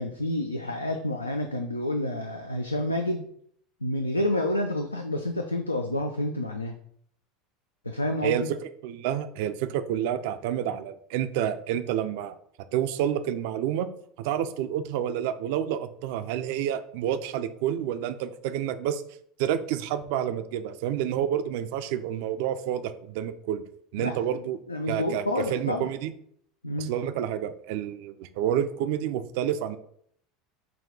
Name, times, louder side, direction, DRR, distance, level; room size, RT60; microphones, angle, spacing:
voice 1, 0.0-3.3 3.8-6.8 7.8-8.5 24.0-24.2 24.7-25.9 26.6-26.9, left 1 dB, 85° left, 4 dB, 0.3 m, -29 dB
voice 2, 8.2-12.3 12.7-13.9 14.2-19.0 19.4-23.6 23.9-24.6 24.9-26.1 26.8-29.8, right 10 dB, 55° right, 11 dB, 0.3 m, -29 dB
5.8 x 2.3 x 3.6 m, 0.66 s
figure-of-eight pair, 75°, 0 cm